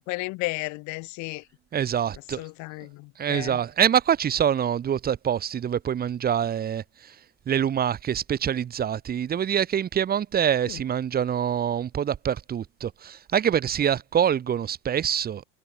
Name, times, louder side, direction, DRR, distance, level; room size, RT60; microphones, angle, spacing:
voice 1, 0.0-1.5 2.1-3.6 10.7-10.8, left 25 dB, 50° left, 5.2 m, -34 dB
voice 2, 1.7-2.4 3.2-6.8 7.5-15.4, right 9 dB, 25° right, 4.7 m, -25 dB
supercardioid pair, 150°, 36 cm